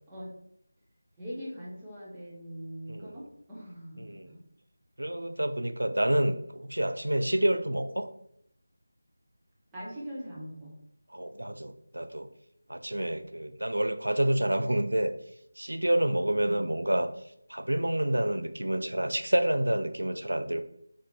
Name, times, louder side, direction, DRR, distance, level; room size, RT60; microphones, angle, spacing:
voice 1, 1.2-4.4 6.0-6.1 9.7-10.8 16.4-16.7, equal, 10° right, -8 dB, 1.0 m, -42 dB
voice 2, 2.9-3.2 4.0-4.3 5.0-8.1 11.1-12.3 12.7-15.1 15.6-17.1 17.5-20.6, right 1 dB, 80° right, 9 dB, 0.5 m, -28 dB
4.7 x 2.9 x 3.4 m, 0.73 s
figure-of-eight pair, 165°, 0 cm